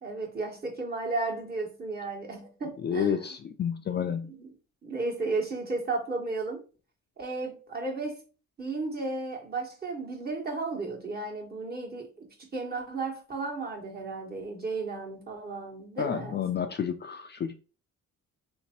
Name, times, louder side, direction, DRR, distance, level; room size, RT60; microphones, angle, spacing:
voice 1, 0.0-3.2 4.0-4.5 4.8-6.6 7.2-8.2 8.6-16.4, right 3 dB, 30° right, 1.3 m, -34 dB
voice 2, 2.8-4.3 16.0-17.5, left 8 dB, 35° left, 0.4 m, -30 dB
3.5 x 2.9 x 2.9 m
cardioid pair, 90°, 30 cm